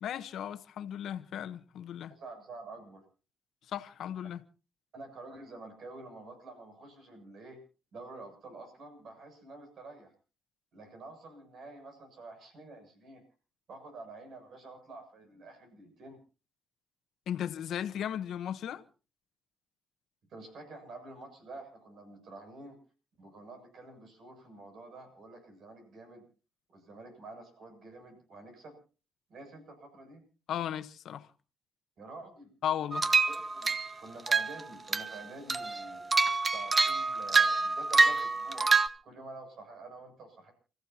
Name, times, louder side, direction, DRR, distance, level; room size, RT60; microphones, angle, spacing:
voice 1, 0.0-2.1 3.7-4.4 17.3-18.8 30.5-31.3 32.6-33.1, left 10 dB, 70° left, 1.0 m, -36 dB
voice 2, 2.1-3.0 4.9-7.6 7.9-10.1 10.7-13.2 13.7-16.2 20.3-22.8 23.2-26.2 26.7-28.8 29.3-30.2 32.0-32.5 33.3-33.7 34.0-36.0 36.5-38.7 39.0-40.5, right 2 dB, 65° right, 7.4 m, -48 dB
sound 1, 32.9-33.9 34.3-34.6 34.9-35.2 35.5-38.9, right 4 dB, 30° right, 1.0 m, -26 dB
29.5 x 15.0 x 2.9 m
cardioid pair, 90°, 0 cm